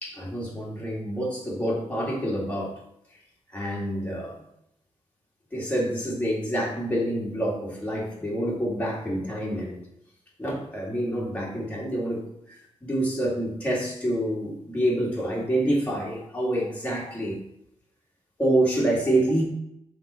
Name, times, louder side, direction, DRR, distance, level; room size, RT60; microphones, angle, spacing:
voice 1, 0.0-2.7 3.5-4.3 5.5-9.8 10.4-12.2 12.8-17.4 18.4-19.4, right 1 dB, 15° left, -5 dB, 2.2 m, -27 dB
7.6 x 3.8 x 5.4 m, 0.78 s
wide cardioid pair, 165°, 11 cm